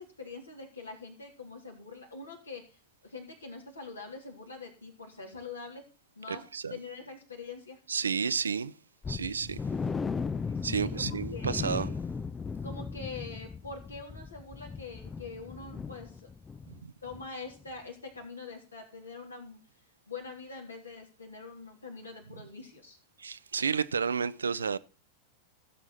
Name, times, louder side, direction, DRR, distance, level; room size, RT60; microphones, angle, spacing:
voice 1, 0.0-5.8 6.2-6.4 6.7-7.8 10.5-12.0 12.6-16.3 17.0-19.6 20.1-23.0, left 4 dB, 75° left, 3.5 m, -44 dB
voice 2, 6.3-6.8 7.9-8.7 9.1-9.6 10.6-11.9 16.8-16.9 23.2-24.8, right 6 dB, 75° right, 0.6 m, -31 dB
sound 1, 9.0-16.8 17.1-17.3 17.7-17.8, left 5 dB, 15° left, 0.4 m, -37 dB
16.5 x 7.5 x 4.2 m
figure-of-eight pair, 90°, 0 cm